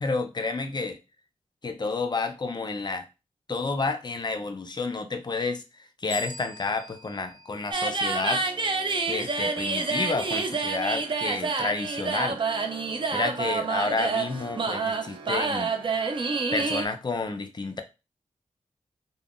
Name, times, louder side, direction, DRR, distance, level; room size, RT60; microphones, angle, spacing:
voice 1, 0.0-1.0 1.6-3.1 3.5-8.4 9.1-12.4 13.1-15.7 16.5-17.8, left 3 dB, 35° left, 0.5 m, -30 dB
sound 1, 6.1-8.6, left 3 dB, 20° left, 0.9 m, -43 dB
sound 2, 7.7-16.8, right 4 dB, 40° right, 0.4 m, -28 dB
3.4 x 2.2 x 2.4 m
cardioid pair, 70°, 13 cm